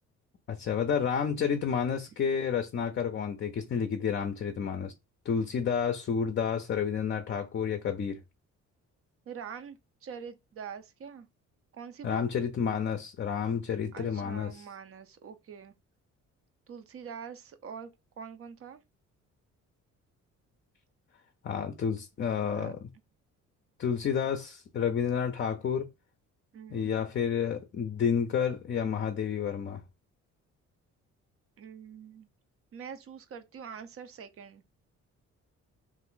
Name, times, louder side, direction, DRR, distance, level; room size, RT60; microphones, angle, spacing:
voice 1, 0.5-4.9 5.2-8.2 12.0-14.7 21.4-22.9 23.8-25.9 26.7-29.8, left 7 dB, 40° left, 0.5 m, -30 dB
voice 2, 9.3-11.3 11.7-12.2 13.9-15.7 16.7-17.9 18.2-18.8 22.4-22.7 26.5-26.9 31.6-32.3 32.7-34.6, right 7 dB, 50° right, 0.5 m, -44 dB
2.5 x 2.4 x 3.7 m
cardioid pair, 90°, 30 cm